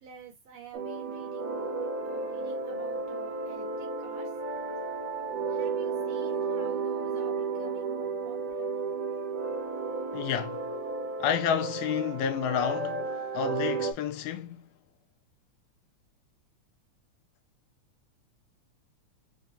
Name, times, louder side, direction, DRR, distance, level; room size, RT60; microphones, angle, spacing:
voice 1, 0.0-4.4 5.5-8.8, right 6 dB, 70° right, 1.8 m, -49 dB
sound 1, 0.7-13.9, right 4 dB, 90° right, 2.4 m, -33 dB
voice 2, 10.1-10.6 11.2-14.7, left 8 dB, 85° left, 2.1 m, -30 dB
5.5 x 2.5 x 2.6 m
omnidirectional pair, 3.5 m